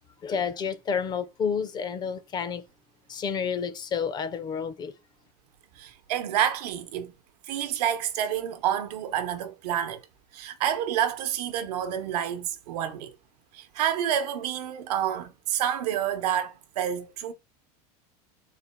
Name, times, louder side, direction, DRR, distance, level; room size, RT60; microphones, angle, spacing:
voice 1, 0.2-2.6 3.1-4.9, left 6 dB, 20° left, 0.4 m, -30 dB
voice 2, 5.7-7.1 7.5-10.0 10.3-13.1 13.5-17.3, right 10 dB, 90° right, 0.8 m, -28 dB
4.0 x 2.2 x 4.3 m
supercardioid pair, 150°, 20 cm